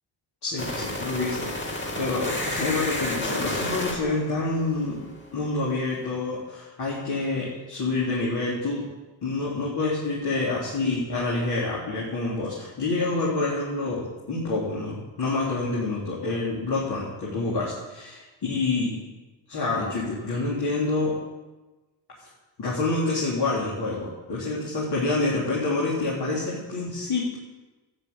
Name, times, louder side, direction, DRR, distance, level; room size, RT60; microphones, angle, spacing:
voice 1, 0.4-5.0 5.3-8.8 9.2-19.0 19.5-21.1 22.6-27.4, left 3 dB, 55° left, -6 dB, 3.9 m, -27 dB
sound 1, 0.6-5.4, left 1 dB, 25° left, 2.8 m, -31 dB
13.0 x 9.8 x 8.3 m, 1.2 s
wide cardioid pair, 125°, 45 cm